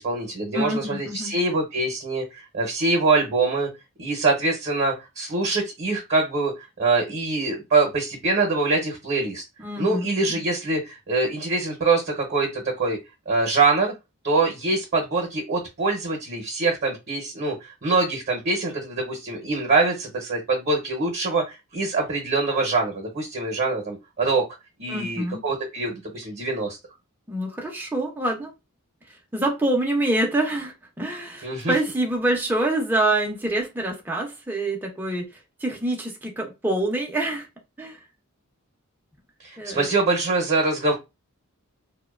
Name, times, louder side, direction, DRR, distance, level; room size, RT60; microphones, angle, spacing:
voice 1, 0.0-3.7 4.0-6.5 6.8-9.4 9.8-13.0 13.3-13.9 14.2-24.4 24.8-26.8 31.4-31.7 39.4-41.0, right 3 dB, 45° right, 0.7 m, -24 dB
voice 2, 0.5-1.3 9.6-10.4 24.9-25.4 27.3-28.5 29.3-35.3 35.6-37.5 37.8-38.0 39.6-39.9, right 1 dB, 10° right, 0.5 m, -26 dB
2.6 x 2.1 x 2.3 m
head